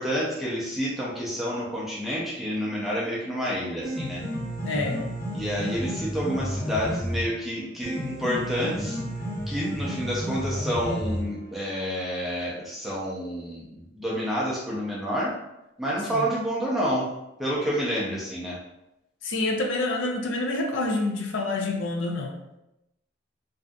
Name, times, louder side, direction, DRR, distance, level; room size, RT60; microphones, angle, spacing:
voice 1, 0.0-4.2 5.3-9.0 9.5-15.4 15.8-17.1 17.4-18.6, equal, ahead, -7 dB, 0.4 m, -29 dB
Piano, 3.6-11.6, equal, 55° left, 0.9 m, -31 dB
voice 2, 4.6-5.0 16.1-16.2 19.2-22.3, left 2 dB, 80° left, 2 dB, 0.4 m, -27 dB
2.6 x 2.3 x 2.2 m, 0.89 s
head